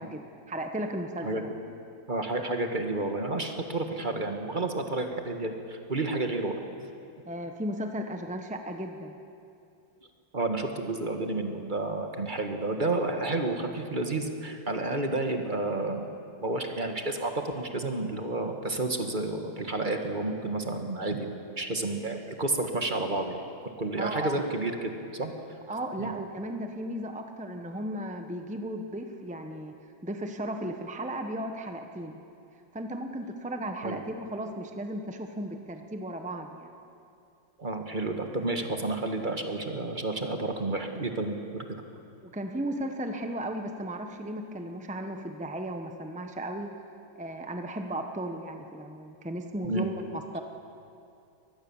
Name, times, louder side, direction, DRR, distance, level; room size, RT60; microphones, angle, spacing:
voice 1, 0.0-1.5 7.3-9.1 24.0-24.4 25.7-29.7 30.0-32.2 32.7-36.7 42.2-46.7 47.1-50.4, right 1 dB, 10° right, 5 dB, 0.4 m, -35 dB
voice 2, 2.1-6.6 10.3-16.1 16.4-23.4 23.8-25.3 26.0-26.1 33.8-34.0 37.6-41.6 49.6-49.9, right 2 dB, 25° right, 4 dB, 1.5 m, -30 dB
23.0 x 19.0 x 7.2 m, 2.6 s
omnidirectional pair, 2.2 m